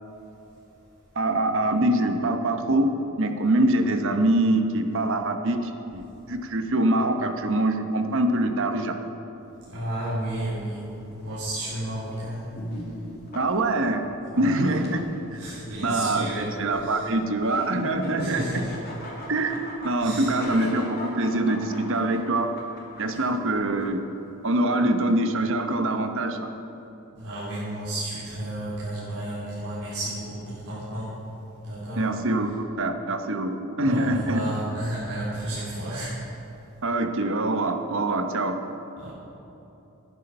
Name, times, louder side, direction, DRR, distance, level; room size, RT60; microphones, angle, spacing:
voice 1, 1.1-2.9 3.2-9.0 13.3-14.1 14.4-15.4 15.8-18.6 19.3-22.5 23.0-24.0 24.4-26.5 32.0-34.4 36.8-38.6, right 2 dB, 60° right, 6 dB, 1.0 m, -24 dB
voice 2, 9.7-10.8 11.2-12.4 14.3-14.8 15.4-17.1 18.2-18.7 20.0-20.3 27.2-31.1 31.7-32.1 33.8-36.1 39.0-39.1, right 1 dB, 85° right, -11 dB, 3.7 m, -32 dB
sound 1, 10.2-23.8, left 1 dB, 45° left, 2.6 m, -40 dB
13.5 x 11.0 x 5.6 m, 3.0 s
head